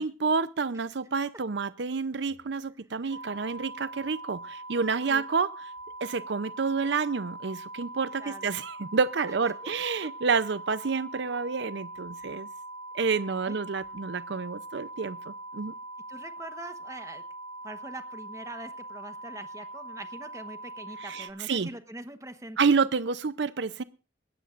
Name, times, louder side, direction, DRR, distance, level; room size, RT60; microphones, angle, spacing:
voice 1, 0.0-5.5 6.0-12.5 12.9-15.7 21.0-21.7 22.6-23.8, right 5 dB, 65° right, 16 dB, 0.6 m, -29 dB
sound 1, 3.1-21.3, right 1 dB, 20° left, 1.3 m, -42 dB
voice 2, 16.1-17.2 17.6-22.7, right 1 dB, 15° right, 9 dB, 1.0 m, -43 dB
21.0 x 16.0 x 2.5 m, 0.33 s
head